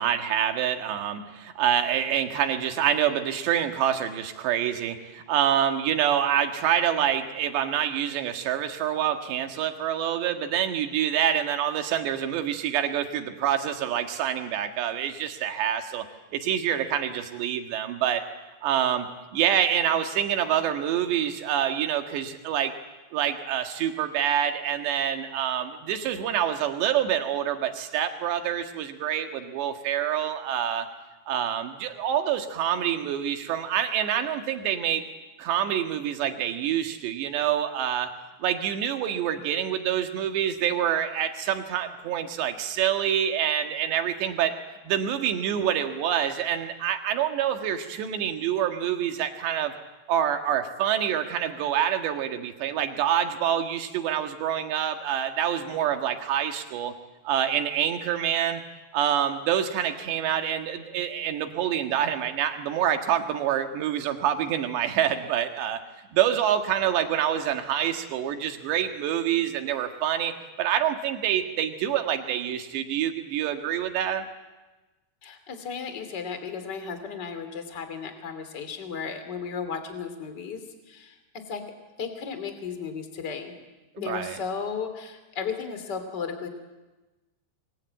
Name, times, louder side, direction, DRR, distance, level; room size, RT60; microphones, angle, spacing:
voice 1, 0.0-16.1 16.3-18.2 18.6-22.7 23.1-30.9 31.3-35.0 35.4-38.1 38.4-44.5 44.8-49.7 50.1-56.9 57.3-58.6 58.9-65.8 66.1-74.3 84.0-84.4, right 10 dB, 65° right, 6 dB, 3.5 m, -26 dB
voice 2, 75.2-81.2 81.5-81.6 82.0-83.5 84.0-86.5, left 6 dB, 30° left, 8 dB, 2.4 m, -34 dB
26.5 x 22.0 x 9.1 m, 1.1 s
omnidirectional pair, 6.0 m